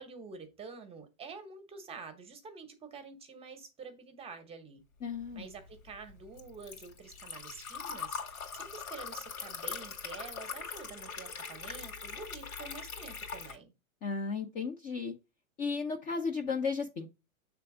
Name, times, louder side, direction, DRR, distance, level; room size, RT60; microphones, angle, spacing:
voice 1, 0.0-4.8 5.3-13.7, right 4 dB, 15° right, 0.8 m, -48 dB
voice 2, 5.0-5.5 14.0-15.1 15.6-17.1, left 5 dB, 20° left, 0.5 m, -34 dB
Liquid, 5.3-13.6, left 5 dB, 85° left, 2.3 m, -42 dB
6.8 x 3.5 x 4.7 m
hypercardioid pair, 140°, 41 cm